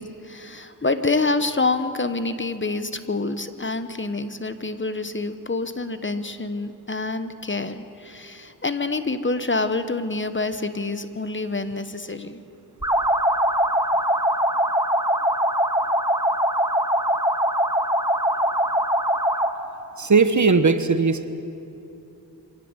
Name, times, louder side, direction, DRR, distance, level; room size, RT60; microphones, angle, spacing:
voice 1, 0.0-12.4, left 3 dB, 30° left, 11 dB, 1.3 m, -27 dB
sound 1, 12.8-19.6, equal, 10° right, 1.7 m, -22 dB
voice 2, 20.0-21.3, right 4 dB, 50° right, 10 dB, 1.4 m, -18 dB
24.5 x 18.0 x 8.2 m, 2.9 s
cardioid pair, 60°, 38 cm